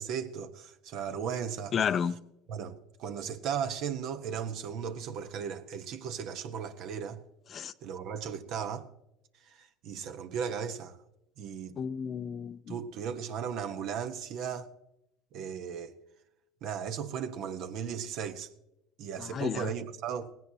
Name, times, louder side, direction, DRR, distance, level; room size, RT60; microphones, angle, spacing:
voice 1, 0.0-1.7 2.5-7.2 7.8-8.9 9.5-11.0 11.4-11.8 12.7-14.7 15.3-16.0 16.6-18.5 19.0-20.3, right 7 dB, 60° right, 1.2 m, -36 dB
voice 2, 1.7-2.1 7.5-7.7 11.8-12.8 19.2-19.7, left 7 dB, 40° left, 0.6 m, -32 dB
18.5 x 16.5 x 2.9 m
supercardioid pair, 100°, 0 cm